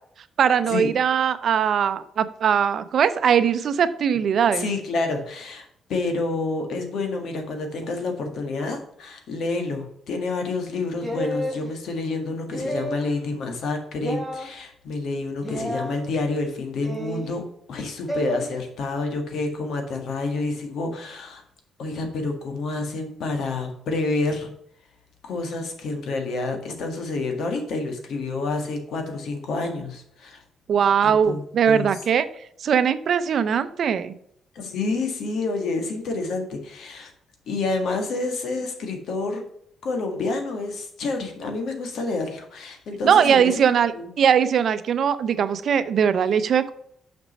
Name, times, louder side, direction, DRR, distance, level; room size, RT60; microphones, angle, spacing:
voice 1, 0.4-4.7 30.7-32.3 32.6-34.1 43.0-46.7, right 7 dB, 60° right, 13 dB, 0.6 m, -20 dB
voice 2, 4.5-21.4 21.8-24.5 25.2-30.4 31.0-31.9 34.5-37.1 37.5-39.4 39.8-43.5 43.9-44.1, left 3 dB, 70° left, 4 dB, 1.7 m, -28 dB
sound 1, 11.0-11.6 12.5-13.1 14.0-14.5 15.4-15.9 16.8-17.3 18.1-18.4, equal, 15° left, 2.7 m, -30 dB
6.3 x 5.2 x 5.3 m, 0.69 s
cardioid pair, 90°, 0 cm